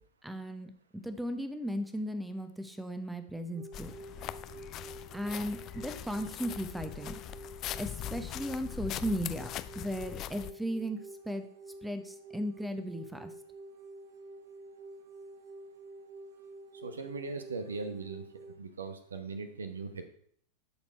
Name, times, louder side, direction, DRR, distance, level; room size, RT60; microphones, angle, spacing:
voice 1, 0.2-3.9 5.1-7.1 7.8-11.0 11.3-11.5 11.8-13.3, equal, 5° right, 9 dB, 0.9 m, -36 dB
sound 1, 3.5-18.6, right 2 dB, 30° right, 1.0 m, -49 dB
sound 2, 3.7-10.5, left 12 dB, 35° left, 0.4 m, -41 dB
voice 2, 16.8-18.3 18.6-20.1, right 4 dB, 70° right, 9 dB, 1.0 m, -39 dB
12.0 x 4.4 x 4.5 m, 0.62 s
figure-of-eight pair, 90°, 0 cm